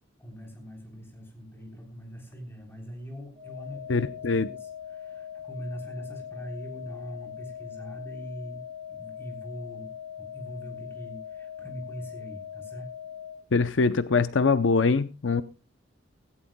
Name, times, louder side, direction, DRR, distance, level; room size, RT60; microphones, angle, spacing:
voice 1, 0.2-4.1 4.3-8.6 8.9-9.9 10.2-12.9, equal, 10° left, 3 dB, 3.5 m, -42 dB
sound 1, 3.3-13.4, left 9 dB, 30° right, 5.5 m, -41 dB
voice 2, 3.9-4.5 13.5-15.4, left 4 dB, 70° left, 14 dB, 0.6 m, -23 dB
16.5 x 15.5 x 2.2 m, 0.28 s
head